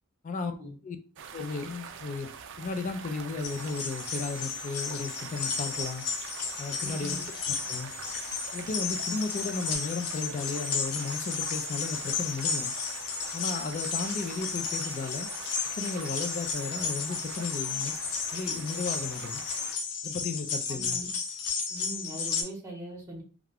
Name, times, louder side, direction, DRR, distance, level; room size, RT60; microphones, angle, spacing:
voice 1, 0.4-0.7 6.8-7.3 20.4-21.1 21.7-23.2, right 1 dB, 15° right, 0.8 m, -41 dB
sound 1, 1.2-19.8, right 6 dB, 55° right, 0.3 m, -44 dB
voice 2, 1.3-2.3 2.6-6.0 6.6-7.2 7.7-7.9 8.5-12.7 13.3-15.3 15.7-17.9 18.3-19.4 20.0-21.0, left 4 dB, 35° left, 0.3 m, -34 dB
sound 2, 3.4-22.4, left 5 dB, 85° left, 0.6 m, -33 dB
2.4 x 2.2 x 3.3 m
head